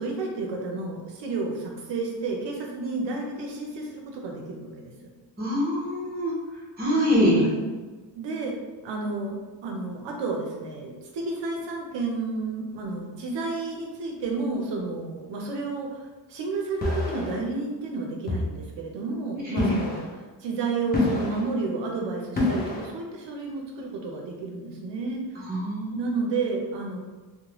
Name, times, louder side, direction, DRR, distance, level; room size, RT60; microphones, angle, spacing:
voice 1, 0.0-4.9 7.4-7.7 8.2-8.5 8.8-9.4 9.6-20.0 20.4-25.2 25.9-27.0, right 3 dB, 70° right, 0 dB, 0.6 m, -31 dB
voice 2, 5.4-6.3 6.8-7.4 19.5-19.8 25.5-26.0, equal, 20° right, -5 dB, 0.7 m, -24 dB
sound 1, 16.8-17.3 18.3-18.6 19.6-20.1 20.9-21.5 22.4-22.9, left 2 dB, 20° left, 0.4 m, -27 dB
3.0 x 2.1 x 2.9 m, 1.3 s
wide cardioid pair, 170°, 45 cm